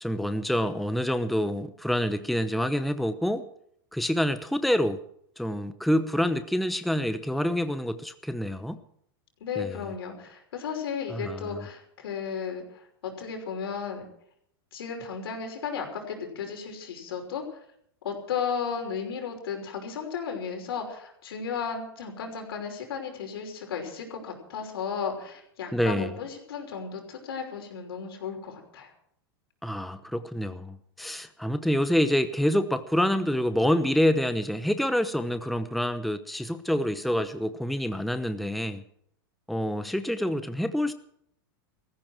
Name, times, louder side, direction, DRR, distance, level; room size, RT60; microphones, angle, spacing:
voice 1, 0.0-3.5 3.9-5.0 5.4-8.8 9.6-9.8 11.1-11.6 25.7-26.1 29.6-38.8 39.5-40.9, equal, ahead, 10 dB, 0.9 m, -27 dB
voice 2, 9.4-14.0 14.7-17.6 18.0-28.9, left 6 dB, 85° left, 4 dB, 5.8 m, -34 dB
18.0 x 15.0 x 4.6 m, 0.69 s
hypercardioid pair, 125°, 12 cm